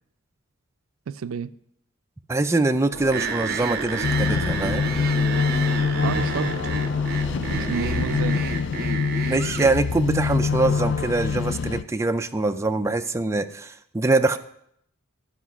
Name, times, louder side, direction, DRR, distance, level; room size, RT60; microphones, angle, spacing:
voice 1, 1.1-1.5 6.0-6.5 7.3-8.4, right 6 dB, 80° right, 0.4 m, -30 dB
voice 2, 2.3-4.8 9.3-14.4, right 2 dB, 15° right, 0.4 m, -23 dB
sound 1, 2.9-8.5, right 1 dB, 10° left, 1.3 m, -38 dB
sound 2, 3.1-9.7, right 5 dB, 50° right, 0.7 m, -30 dB
sound 3, 4.0-11.8, left 5 dB, 60° left, 0.4 m, -25 dB
12.5 x 5.1 x 6.0 m
head